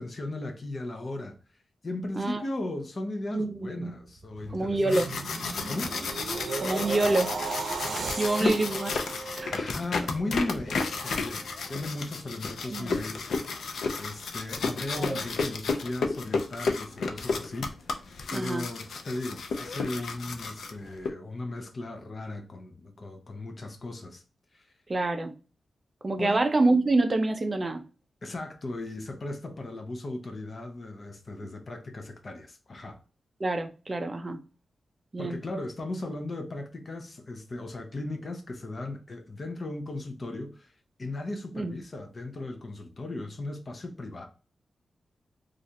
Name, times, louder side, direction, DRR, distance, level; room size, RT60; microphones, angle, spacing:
voice 1, 0.0-1.4 1.8-5.2 5.7-6.0 7.8-8.6 9.5-13.3 14.0-18.0 18.3-24.2 24.5-24.7 26.2-26.4 28.2-33.0 35.2-40.7 41.0-44.3, left 2 dB, 35° left, 0.6 m, -36 dB
voice 2, 3.3-3.9 4.5-5.1 6.6-7.6 8.0-8.9 9.4-9.5 12.7-13.0 15.0-15.2 18.3-18.7 24.9-25.3 26.0-27.8 33.4-34.4 35.1-35.4 41.5-41.7, right 2 dB, 25° right, 0.5 m, -27 dB
sound 1, 4.1-10.3 10.8-11.1, right 4 dB, 85° right, 0.6 m, -36 dB
sound 2, 4.7-21.1, left 4 dB, 85° left, 0.5 m, -32 dB
3.2 x 2.4 x 2.6 m
wide cardioid pair, 160°, 0 cm